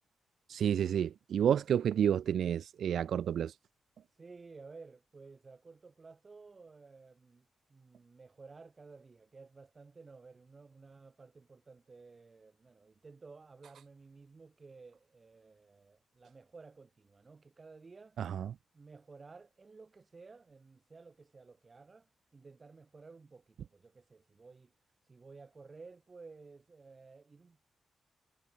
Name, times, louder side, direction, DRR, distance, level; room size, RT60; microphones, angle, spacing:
voice 1, 0.5-3.5 18.2-18.5, right 9 dB, 75° right, 0.4 m, -30 dB
voice 2, 4.1-18.2 18.7-24.7 25.0-27.7, right 4 dB, 30° right, 4.2 m, -55 dB
wide cardioid pair, 135°, 0 cm